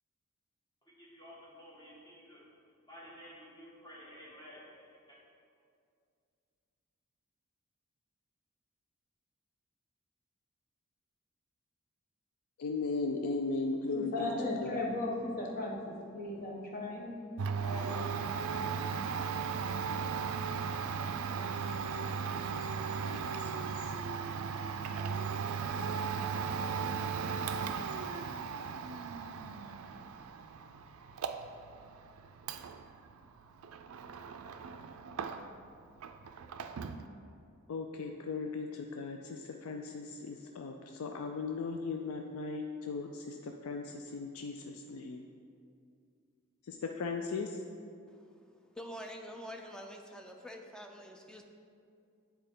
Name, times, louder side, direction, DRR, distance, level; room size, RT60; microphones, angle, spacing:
voice 1, 1.0-2.4 2.9-4.7 5.1-5.2, equal, 20° left, -7 dB, 1.6 m, -52 dB
voice 2, 12.6-14.3 14.6-14.8 23.1-23.8 37.7-45.2 46.7-47.6, left 3 dB, 85° left, 3 dB, 0.4 m, -37 dB
voice 3, 13.9-17.1 17.6-18.1, left 2 dB, 45° left, -2 dB, 1.1 m, -37 dB
Domestic sounds home sounds, 17.4-35.7 36.0-37.0, right 6 dB, 80° right, 0.4 m, -37 dB
voice 4, 48.8-51.4, equal, 5° left, 3 dB, 0.4 m, -46 dB
8.9 x 4.4 x 3.7 m, 2.4 s
head